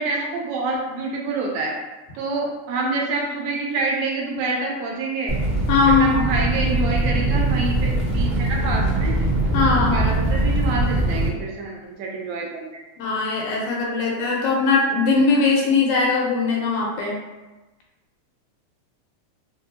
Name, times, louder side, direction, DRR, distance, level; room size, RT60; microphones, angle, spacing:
voice 1, 0.0-1.8 2.2-5.4 5.9-9.2 9.9-12.8, right 3 dB, 80° right, -2 dB, 1.8 m, -27 dB
sound 1, 5.3-11.3, right 1 dB, 50° right, 0.6 m, -22 dB
voice 2, 5.7-6.3 9.5-10.0 13.0-17.2, left 4 dB, 85° left, -2 dB, 2.2 m, -20 dB
4.7 x 2.6 x 2.7 m, 1.1 s
omnidirectional pair, 3.5 m